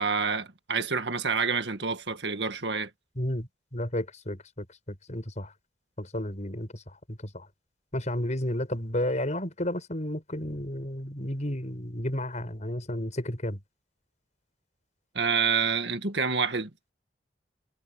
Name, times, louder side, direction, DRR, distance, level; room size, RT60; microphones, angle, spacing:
voice 1, 0.0-2.9 15.1-16.7, right 5 dB, 75° right, 1.8 m, -28 dB
voice 2, 3.2-5.5 6.0-6.7 7.1-7.5 7.9-13.6, left 1 dB, 40° left, 6.2 m, -32 dB
head